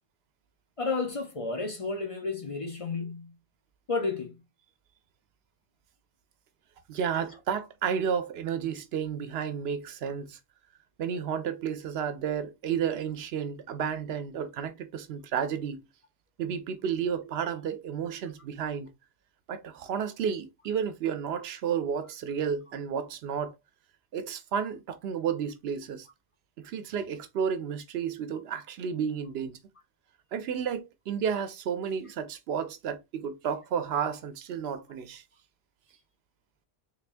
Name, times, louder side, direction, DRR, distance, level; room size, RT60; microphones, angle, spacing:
voice 1, 0.8-3.4 3.9-4.4, left 4 dB, 35° left, 0.7 m, -32 dB
voice 2, 6.9-10.4 11.0-15.8 16.4-18.9 19.5-23.5 24.1-26.1 26.6-29.6 30.3-35.2, right 7 dB, 75° right, 0.8 m, -32 dB
3.6 x 3.3 x 2.4 m
omnidirectional pair, 1.1 m